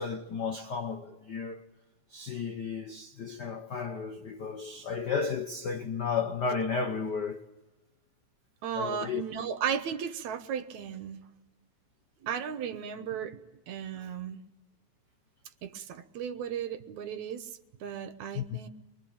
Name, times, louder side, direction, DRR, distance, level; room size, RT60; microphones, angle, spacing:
voice 1, 0.0-1.6 2.1-7.4 8.8-9.2 18.3-18.6, left 5 dB, 70° left, 0.9 m, -33 dB
voice 2, 8.6-11.2 12.2-13.4 13.7-14.4 15.6-17.5 17.8-18.7, right 7 dB, 75° right, 2.4 m, -35 dB
24.0 x 23.5 x 8.7 m
omnidirectional pair, 3.4 m